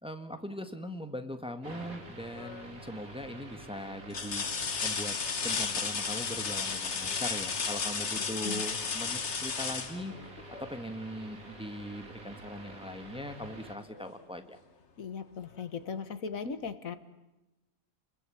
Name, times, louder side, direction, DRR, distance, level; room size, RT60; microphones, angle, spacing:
voice 1, 0.0-4.5 4.8-5.1 5.4-14.6, equal, 5° right, 7 dB, 1.6 m, -40 dB
sound 1, 1.6-13.8, right 2 dB, 85° right, 3.7 m, -48 dB
sound 2, 2.3-2.8 3.4-3.5 4.1-10.8 12.6-12.7 13.2-14.2 15.5-15.6, left 5 dB, 55° left, 1.6 m, -34 dB
voice 2, 8.2-8.6 15.0-17.0, left 5 dB, 75° left, 11 dB, 1.8 m, -38 dB
29.5 x 21.5 x 8.7 m, 0.99 s
omnidirectional pair, 1.4 m